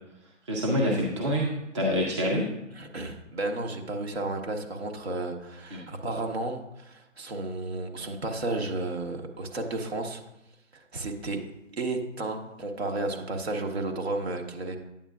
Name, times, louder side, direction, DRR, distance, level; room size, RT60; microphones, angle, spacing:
voice 1, 0.5-2.5 5.7-5.8, equal, 25° right, -2 dB, 0.7 m, -26 dB
voice 2, 2.8-10.2 10.7-11.4 11.7-14.8, right 2 dB, 55° right, 3 dB, 1.3 m, -32 dB
9.0 x 7.7 x 2.4 m, 0.86 s
hypercardioid pair, 155°, 38 cm